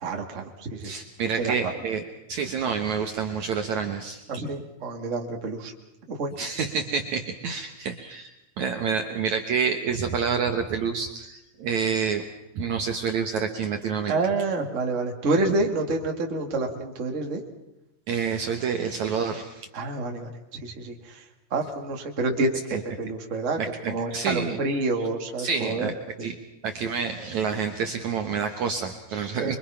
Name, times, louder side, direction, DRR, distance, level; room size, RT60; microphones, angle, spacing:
voice 1, 0.0-1.0 1.3-1.5 4.3-5.7 6.1-6.3 14.1-17.4 19.7-21.2 21.5-23.6 23.9-25.9 26.2-26.3 29.4-29.5, right 3 dB, 25° right, 1 dB, 2.1 m, -28 dB
voice 2, 0.8-2.0 2.3-4.2 6.4-12.2 12.6-14.2 18.1-19.7 22.7-22.8 23.6-24.6 25.4-25.9 26.2-26.3 26.6-29.6, right 6 dB, 60° right, 5 dB, 2.2 m, -28 dB
25.0 x 24.0 x 5.8 m, 0.91 s
omnidirectional pair, 4.5 m